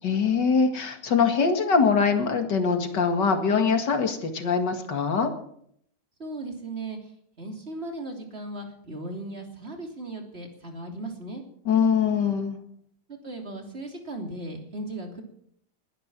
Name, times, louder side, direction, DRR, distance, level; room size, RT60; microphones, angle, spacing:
voice 1, 0.0-5.3 11.7-12.6, left 5 dB, 85° left, 6 dB, 2.7 m, -23 dB
voice 2, 6.2-7.1 7.4-11.4 13.1-15.2, right 2 dB, 35° right, 3 dB, 3.2 m, -37 dB
21.5 x 11.0 x 6.1 m, 0.67 s
omnidirectional pair, 1.8 m